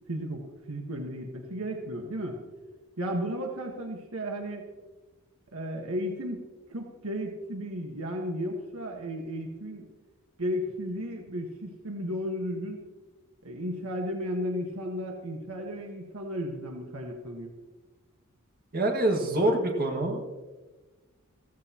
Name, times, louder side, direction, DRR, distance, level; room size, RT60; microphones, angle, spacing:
voice 1, 0.1-2.4 3.0-4.7 5.5-6.4 6.7-9.9 10.4-12.8 13.4-17.5, equal, 70° right, 2 dB, 1.5 m, -34 dB
voice 2, 18.7-20.4, right 1 dB, 45° right, 2 dB, 1.9 m, -26 dB
15.0 x 15.0 x 3.0 m, 1.2 s
head